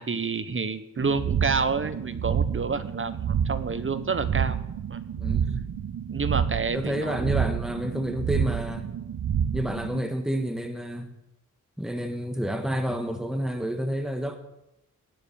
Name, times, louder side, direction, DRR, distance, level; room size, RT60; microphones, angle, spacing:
voice 1, 0.0-4.6 4.9-5.0 6.1-7.3, right 4 dB, 40° right, 12 dB, 1.2 m, -29 dB
sound 1, 1.0-10.0, right 8 dB, 75° right, 0.8 m, -29 dB
voice 2, 5.2-5.6 6.7-8.9 9.5-11.1 11.8-14.4, equal, ahead, 6 dB, 1.6 m, -29 dB
18.5 x 7.1 x 7.1 m, 0.87 s
cardioid pair, 75°, 32 cm